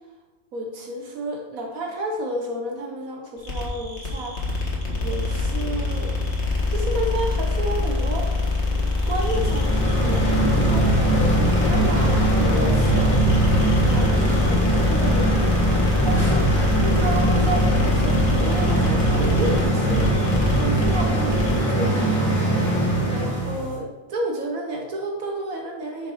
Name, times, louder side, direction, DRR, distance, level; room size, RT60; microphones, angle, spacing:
voice 1, 0.5-4.7 5.0-6.1 6.7-13.4 13.8-15.5 16.0-20.1 20.6-22.2 23.1-26.1, right 1 dB, 75° right, 1 dB, 1.5 m, -31 dB
sound 1, 3.4-21.6, left 3 dB, 50° left, 2.0 m, -24 dB
sound 2, 9.1-23.7, right 1 dB, 5° left, 2.6 m, -21 dB
9.8 x 5.3 x 4.6 m, 1.2 s
omnidirectional pair, 1.5 m